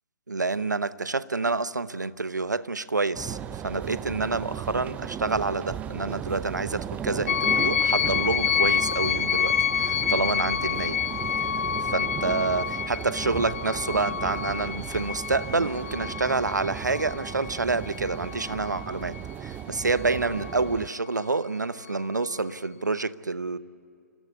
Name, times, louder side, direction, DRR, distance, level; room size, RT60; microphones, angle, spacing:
voice 1, 0.3-3.4 3.6-11.0 11.9-23.6, right 3 dB, 85° right, 15 dB, 0.9 m, -28 dB
sound 1, 3.1-20.9, right 10 dB, 15° right, 0.5 m, -36 dB
sound 2, 7.3-19.2 19.8-20.6, left 8 dB, 50° left, 0.5 m, -28 dB
26.5 x 16.5 x 9.7 m, 2.4 s
figure-of-eight pair, 135°, 9 cm